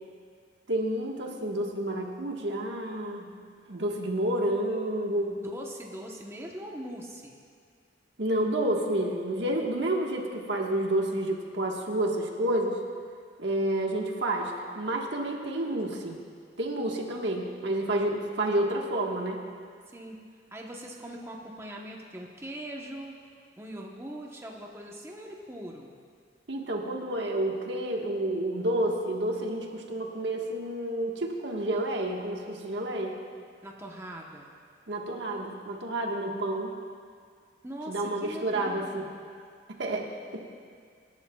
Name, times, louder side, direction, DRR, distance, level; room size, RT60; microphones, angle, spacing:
voice 1, 0.7-3.3 3.7-5.4 8.2-12.8 13.4-16.1 16.6-19.4 26.5-33.2 34.9-36.7 37.9-39.1 39.8-40.1, right 1 dB, 70° right, 0 dB, 1.4 m, -29 dB
voice 2, 5.5-7.4 19.9-20.2 20.5-23.2 23.6-25.9 33.6-34.5 37.6-39.1, right 1 dB, 15° right, -1 dB, 1.0 m, -41 dB
25.0 x 11.5 x 2.3 m, 2.1 s
head